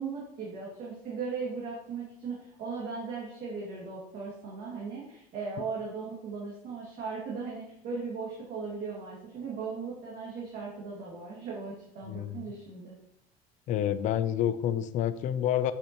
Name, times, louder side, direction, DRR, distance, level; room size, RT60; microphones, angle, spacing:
voice 1, 0.0-12.9, right 4 dB, 50° right, -5 dB, 2.2 m, -38 dB
voice 2, 13.7-15.7, left 10 dB, 45° left, 12 dB, 0.5 m, -28 dB
8.1 x 5.9 x 3.0 m, 0.74 s
cardioid pair, 160°, 18 cm